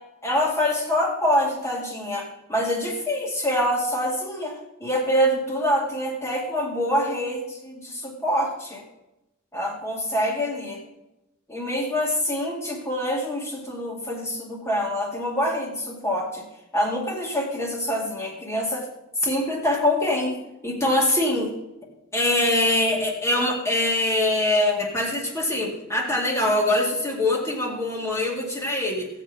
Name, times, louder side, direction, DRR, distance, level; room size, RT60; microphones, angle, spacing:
voice 1, 0.2-8.8 9.5-10.8 11.5-16.4 16.7-18.9 19.2-20.4 20.6-21.5 22.1-29.1, left 1 dB, 15° left, -2 dB, 2.3 m, -24 dB
16.5 x 8.3 x 5.3 m, 0.93 s
head